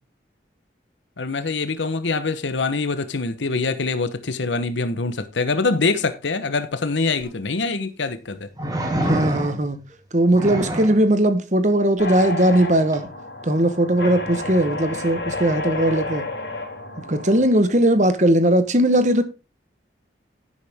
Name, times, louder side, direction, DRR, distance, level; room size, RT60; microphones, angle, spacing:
voice 1, 1.2-8.5, left 3 dB, 85° left, 1.0 m, -24 dB
sound 1, 7.2-7.3 8.6-9.8 10.3-11.0 12.9-13.1, right 1 dB, 20° right, 2.0 m, -26 dB
voice 2, 9.0-9.8 10.1-13.1 13.4-16.3 17.1-19.2, right 1 dB, 40° right, 1.2 m, -19 dB
sound 2, 12.0-17.6, left 2 dB, 70° left, 4.9 m, -31 dB
11.0 x 8.4 x 3.6 m
head